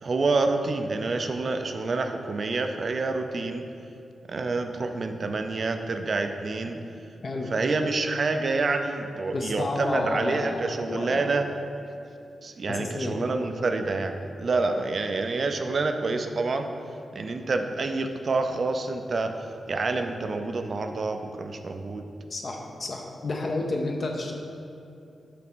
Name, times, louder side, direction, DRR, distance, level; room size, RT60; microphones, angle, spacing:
voice 1, 0.0-3.7 4.3-6.8 7.5-11.5 12.4-16.7 17.1-19.3 19.7-22.0, right 3 dB, 45° right, 6 dB, 0.4 m, -27 dB
voice 2, 9.3-11.3 12.7-13.2 22.3-24.3, left 2 dB, 40° left, 1 dB, 0.6 m, -31 dB
5.9 x 4.0 x 6.1 m, 2.7 s
wide cardioid pair, 150°, 0 cm